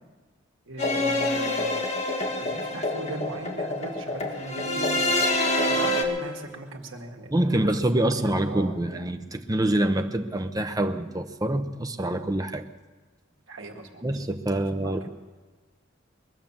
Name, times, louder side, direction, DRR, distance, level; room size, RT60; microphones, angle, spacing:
voice 1, 0.7-1.8 2.3-5.1 5.7-7.6 7.9-8.8 13.5-14.0 14.7-15.1, right 2 dB, 75° right, 2 dB, 2.0 m, -38 dB
sound 1, 0.8-6.0, left 1 dB, 35° left, 2.0 m, -26 dB
voice 2, 7.3-12.7 14.0-15.1, right 1 dB, 20° right, 6 dB, 0.8 m, -26 dB
22.5 x 8.0 x 7.4 m, 1.3 s
head